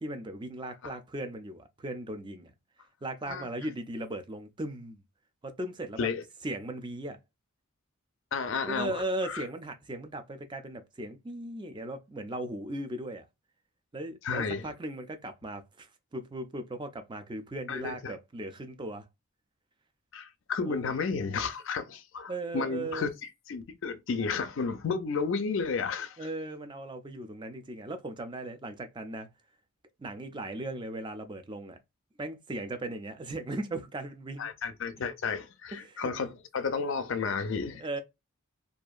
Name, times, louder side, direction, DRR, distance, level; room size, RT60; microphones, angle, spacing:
voice 1, 0.0-2.5 3.0-5.0 5.4-6.1 6.4-7.2 8.6-13.3 13.9-19.0 20.7-21.0 22.3-23.1 26.2-29.3 30.0-31.8 32.2-34.5 35.7-36.1 37.8-38.0, right 1 dB, 20° right, 0.4 m, -37 dB
voice 2, 8.3-9.4 14.2-14.7 17.7-18.1 20.1-26.2 34.4-38.0, left 5 dB, 60° left, 0.4 m, -32 dB
2.7 x 2.4 x 2.3 m
head